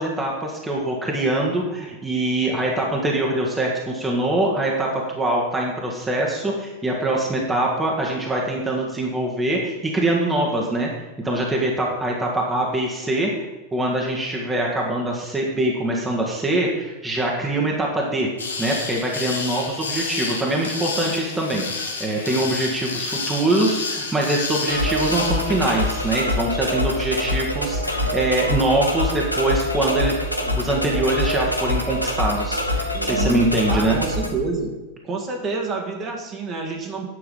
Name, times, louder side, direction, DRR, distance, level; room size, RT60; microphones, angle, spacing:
voice 1, 0.0-10.9 11.2-13.3 13.7-18.3 18.6-21.7 22.0-30.2 30.4-34.0, right 1 dB, 10° right, -2 dB, 1.7 m, -23 dB
sound 1, 18.4-26.2, left 4 dB, 70° left, 1.5 m, -30 dB
sound 2, 24.7-34.3, left 1 dB, 85° left, 1.3 m, -25 dB
voice 2, 32.9-33.4 33.7-34.7 35.0-37.1, right 4 dB, 30° right, 1 dB, 1.9 m, -28 dB
9.9 x 6.8 x 5.5 m, 1.1 s
figure-of-eight pair, 90°, 0 cm